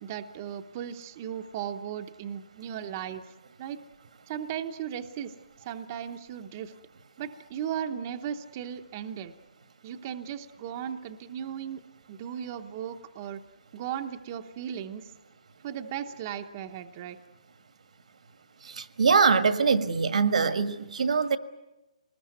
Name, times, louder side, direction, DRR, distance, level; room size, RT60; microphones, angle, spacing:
voice 1, 0.0-3.8 4.3-6.7 7.2-9.3 9.8-11.8 12.1-13.4 13.7-15.1 15.6-17.2, right 9 dB, 25° right, 6 dB, 0.8 m, -36 dB
voice 2, 18.8-21.4, right 5 dB, 75° right, 10 dB, 1.6 m, -23 dB
24.0 x 20.0 x 9.4 m, 1.1 s
hypercardioid pair, 175°, 4 cm